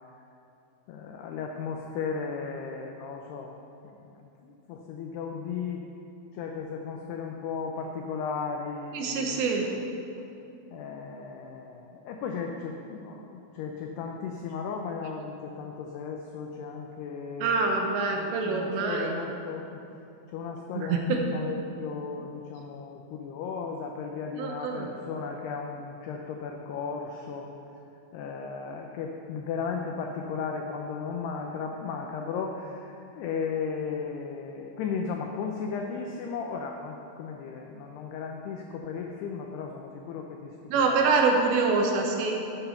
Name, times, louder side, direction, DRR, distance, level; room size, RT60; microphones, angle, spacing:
voice 1, 0.9-3.6 3.8-5.9 6.3-9.5 10.7-19.8 20.3-27.5 28.1-41.1, left 5 dB, 90° left, 2 dB, 2.3 m, -35 dB
voice 2, 8.9-9.7 17.4-19.2 20.8-21.2 24.4-24.9 40.7-42.3, right 4 dB, 75° right, 1 dB, 2.9 m, -25 dB
12.5 x 8.8 x 5.8 m, 2.8 s
omnidirectional pair, 5.7 m